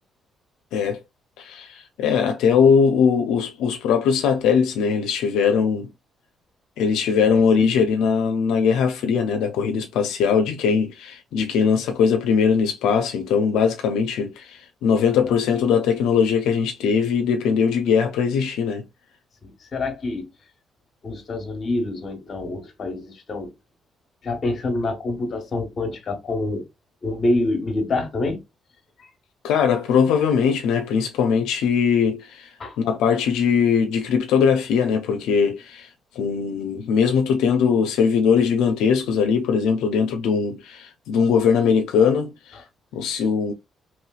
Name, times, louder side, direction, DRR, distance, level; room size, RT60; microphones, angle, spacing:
voice 1, 0.7-1.0 1.4-5.9 6.8-18.8 29.4-32.5 32.8-35.9 36.2-42.6 42.9-43.5, left 6 dB, 90° left, 0.4 m, -20 dB
voice 2, 19.4-20.3 21.0-23.5 24.2-26.7 27.0-28.4 29.0-29.1 32.6-32.8, left 2 dB, 45° left, 1.1 m, -26 dB
3.1 x 2.9 x 2.3 m
cardioid pair, 90°, 0 cm